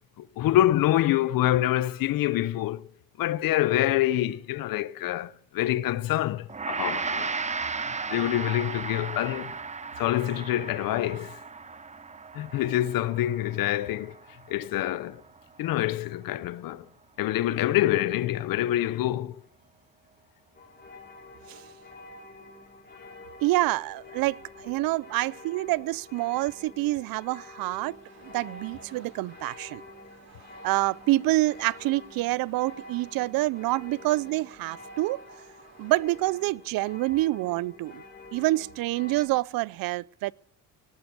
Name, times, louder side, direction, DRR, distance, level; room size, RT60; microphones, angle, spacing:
voice 1, 0.2-2.9 3.2-7.3 8.1-9.5 10.0-11.4 12.3-14.1 14.5-15.2 15.6-16.8 17.2-19.4, left 14 dB, 70° left, 0.9 m, -26 dB
Gong, 6.5-15.9, right 4 dB, 20° right, 0.8 m, -36 dB
sound 1, 20.5-39.3, left 2 dB, 25° left, 3.6 m, -48 dB
voice 2, 23.4-28.0 28.2-29.8 30.6-35.2 35.8-38.0 38.3-40.3, right 18 dB, 75° right, 0.5 m, -27 dB
sound 2, 27.9-36.5, right 5 dB, 45° right, 3.9 m, -57 dB
18.5 x 12.0 x 6.2 m
cardioid pair, 90°, 35 cm